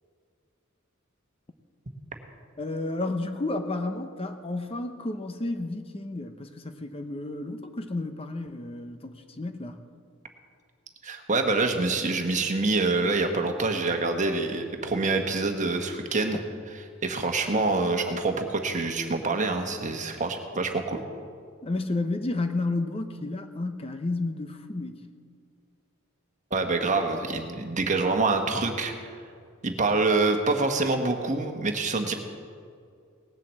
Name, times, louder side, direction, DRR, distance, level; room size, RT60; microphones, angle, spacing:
voice 1, 2.6-9.8 16.3-16.4 21.6-25.1, left 2 dB, 30° left, 7 dB, 0.7 m, -31 dB
voice 2, 11.0-16.4 17.0-21.0 26.5-29.1 29.6-32.1, right 3 dB, 35° right, 5 dB, 1.4 m, -26 dB
18.0 x 7.6 x 7.6 m, 2.3 s
head